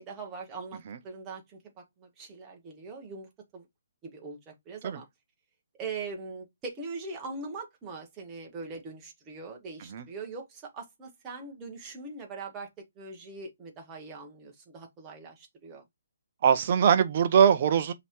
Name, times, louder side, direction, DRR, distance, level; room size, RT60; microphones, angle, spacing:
voice 1, 0.0-1.6 2.0-3.6 4.0-5.0 5.8-12.7 13.0-15.8, right 4 dB, 10° right, 0.8 m, -41 dB
voice 2, 16.4-17.9, right 8 dB, 30° right, 0.5 m, -22 dB
5.2 x 2.8 x 2.9 m
hypercardioid pair, 180°, 0 cm